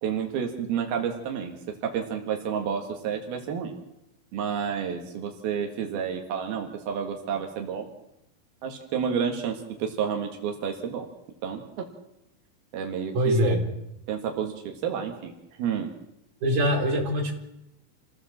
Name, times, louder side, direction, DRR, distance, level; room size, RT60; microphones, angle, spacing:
voice 1, 0.0-3.8 4.3-7.9 8.6-11.1 11.4-11.9 12.7-13.3 14.1-15.9, right 7 dB, 90° right, 2 dB, 3.8 m, -30 dB
voice 2, 13.1-13.6 16.4-17.3, equal, 55° right, -1 dB, 5.5 m, -23 dB
28.0 x 17.0 x 7.4 m, 0.86 s
omnidirectional pair, 4.2 m